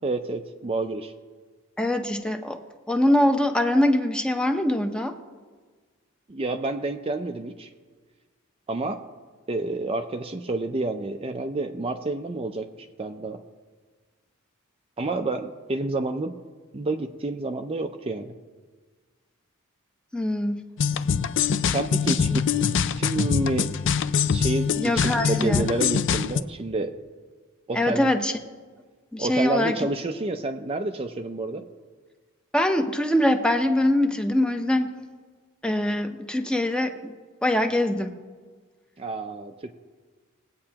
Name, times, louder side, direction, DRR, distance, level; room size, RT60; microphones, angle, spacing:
voice 1, 0.0-1.1 6.3-7.7 8.7-9.0 9.5-12.7 13.0-13.4 15.0-16.3 16.7-18.3 21.6-22.5 23.0-23.7 24.3-26.9 27.7-28.1 29.2-31.7 39.0-39.7, right 2 dB, 25° right, 6 dB, 0.5 m, -29 dB
voice 2, 1.8-2.6 2.9-5.2 20.1-20.6 24.8-25.7 27.7-28.3 29.1-29.8 32.5-35.0 35.6-37.1 37.4-38.1, left 1 dB, 5° left, 6 dB, 0.7 m, -23 dB
sound 1, 20.8-26.4, left 6 dB, 60° left, 0.4 m, -24 dB
20.5 x 8.6 x 2.9 m, 1.4 s
head